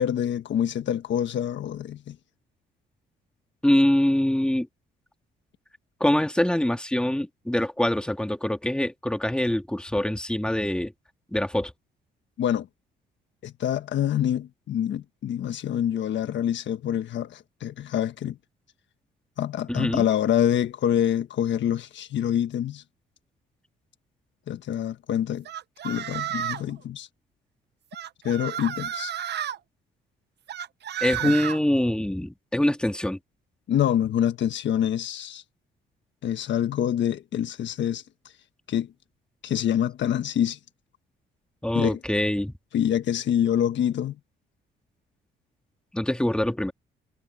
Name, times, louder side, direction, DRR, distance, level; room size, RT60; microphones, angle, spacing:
voice 1, 0.0-2.2 12.4-12.7 13.4-18.4 19.4-22.8 24.5-25.5 25.8-27.1 28.2-29.1 31.2-31.3 33.7-35.4 36.2-38.0 38.7-38.9 39.4-40.6 41.7-42.0 42.7-44.2, left 10 dB, 65° left, 1.4 m, -26 dB
voice 2, 3.6-4.7 6.0-10.9 11.3-11.7 19.7-20.1 31.0-33.2 41.6-42.5 45.9-46.7, left 1 dB, 5° left, 2.3 m, -24 dB
sound 1, 25.5-26.7 27.9-29.6 30.5-31.6, right 10 dB, 60° right, 0.9 m, -32 dB
cardioid pair, 90°, 20 cm